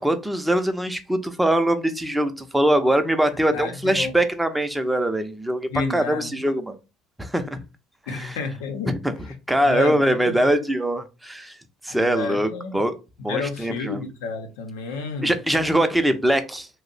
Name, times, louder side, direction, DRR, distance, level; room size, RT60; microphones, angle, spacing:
voice 1, 0.0-6.8 7.2-7.6 8.1-8.4 8.9-9.1 9.5-11.6 11.8-13.0 13.2-14.0 15.2-16.7, right 1 dB, 5° right, 0.6 m, -22 dB
voice 2, 3.5-4.1 5.7-6.3 8.1-8.9 9.6-10.6 11.9-12.8 13.3-15.3, left 4 dB, 90° left, 0.7 m, -30 dB
2.6 x 2.1 x 3.9 m
supercardioid pair, 85°, 0 cm